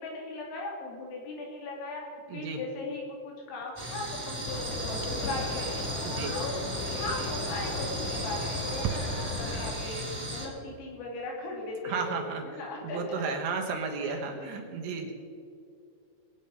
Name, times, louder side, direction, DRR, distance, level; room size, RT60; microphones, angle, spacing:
voice 1, 0.0-2.0 2.3-5.9 6.3-6.5 6.8-13.2 14.0-14.5, left 2 dB, 85° left, -1 dB, 5.8 m, -38 dB
voice 2, 2.3-2.6 6.0-6.4 11.8-15.1, right 4 dB, 70° right, 2 dB, 3.1 m, -34 dB
sound 1, 3.6-3.8 5.0-5.4 7.5-8.0 8.3-8.4 8.8-9.6, right 8 dB, 90° right, 3.5 m, -37 dB
sound 2, 3.7-10.5, right 1 dB, 10° right, 1.5 m, -36 dB
sound 3, 4.4-9.7, left 3 dB, 60° left, 2.1 m, -36 dB
22.0 x 9.1 x 5.6 m, 2.4 s
omnidirectional pair, 5.8 m